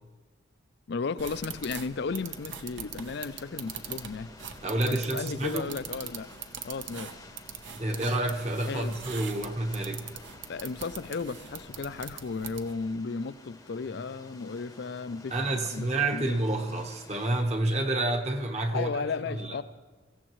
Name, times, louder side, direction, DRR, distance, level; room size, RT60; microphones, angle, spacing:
voice 1, 0.9-4.3 4.9-6.3 6.6-7.1 8.7-9.0 10.5-15.4 15.7-16.4 18.7-19.6, left 4 dB, 55° left, 15 dB, 0.4 m, -34 dB
sound 1, 1.2-17.4, left 2 dB, 15° left, 0.8 m, -52 dB
sound 2, 1.2-12.9, right 7 dB, 60° right, 0.8 m, -43 dB
voice 2, 4.6-5.7 7.8-10.0 15.3-19.6, right 2 dB, 30° right, 4 dB, 1.1 m, -29 dB
24.0 x 15.5 x 3.1 m, 1.4 s
head